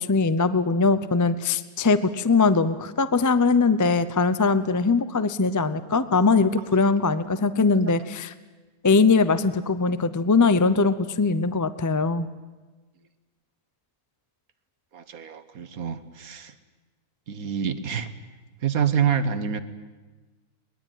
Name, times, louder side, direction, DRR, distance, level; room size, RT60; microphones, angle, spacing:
voice 1, 0.1-8.3 8.8-12.3, left 4 dB, 20° left, 13 dB, 0.5 m, -21 dB
voice 2, 14.9-16.5 17.3-18.1 18.6-19.6, right 7 dB, 75° right, 11 dB, 1.7 m, -27 dB
22.5 x 20.5 x 9.2 m, 1.2 s
omnidirectional pair, 1.5 m